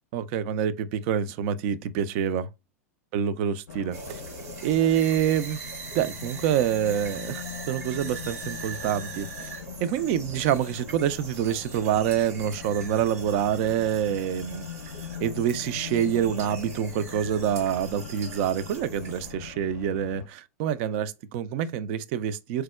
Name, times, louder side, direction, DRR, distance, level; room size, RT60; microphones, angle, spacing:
voice 1, 0.1-2.5 3.1-4.2 4.6-5.6 5.9-9.5 9.8-14.7 15.2-22.6, right 9 dB, 50° right, 0.3 m, -26 dB
Race car auto racing, 3.7-20.3, left 7 dB, 75° left, 0.4 m, -41 dB
sound 1, 3.9-19.3, right 5 dB, 70° right, 1.1 m, -42 dB
4.4 x 2.0 x 2.2 m
hypercardioid pair, 95°, 8 cm